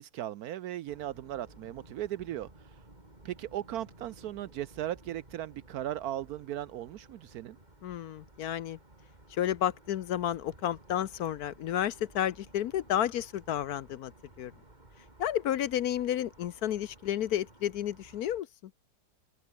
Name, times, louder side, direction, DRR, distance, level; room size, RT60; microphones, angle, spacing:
voice 1, 0.0-2.5 3.2-7.6, right 12 dB, 70° right, 1.0 m, -37 dB
sound 1, 0.9-18.4, right 2 dB, 25° right, 3.8 m, -56 dB
voice 2, 7.8-8.8 9.3-14.1 14.4-14.5 15.2-18.5, left 11 dB, 65° left, 1.1 m, -31 dB
open air
omnidirectional pair, 1.9 m